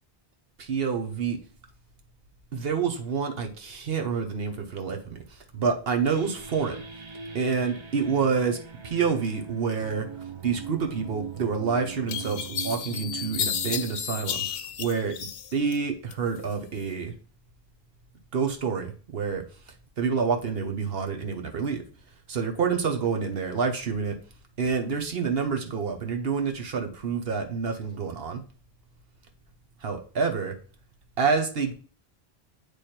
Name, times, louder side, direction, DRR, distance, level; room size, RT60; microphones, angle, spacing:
voice 1, 0.6-1.4 2.5-5.2 5.5-6.8 7.3-8.6 8.8-10.1 10.4-14.4 14.8-15.1 15.5-17.1 18.3-19.4 20.0-21.8 22.3-24.1 24.6-28.4 29.8-30.5 31.2-31.7, right 5 dB, 60° right, 5 dB, 1.1 m, -27 dB
sound 1, 6.0-15.4, right 6 dB, 35° right, 0.5 m, -42 dB
sound 2, 11.4-11.5 12.1-15.8 16.1-16.9, left 8 dB, 90° left, 0.9 m, -32 dB
8.2 x 3.3 x 4.3 m, 0.39 s
omnidirectional pair, 1.1 m